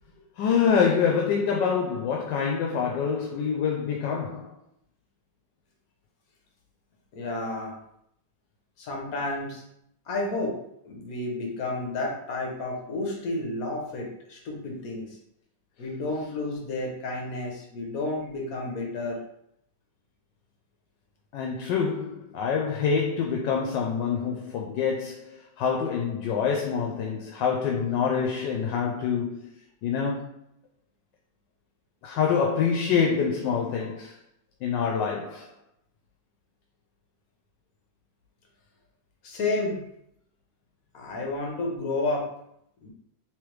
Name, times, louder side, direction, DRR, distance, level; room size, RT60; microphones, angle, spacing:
voice 1, 0.4-4.6 21.3-29.5 29.8-30.3 32.0-34.2 34.6-35.5, left 6 dB, 80° left, 1.2 m, -26 dB
voice 2, 7.1-7.8 8.8-9.6 10.1-10.6 10.8-15.2 15.8-19.2 39.2-39.8 40.9-42.3 42.8-42.9, left 2 dB, 60° left, 1.3 m, -31 dB
3.5 x 3.2 x 3.1 m
omnidirectional pair, 1.9 m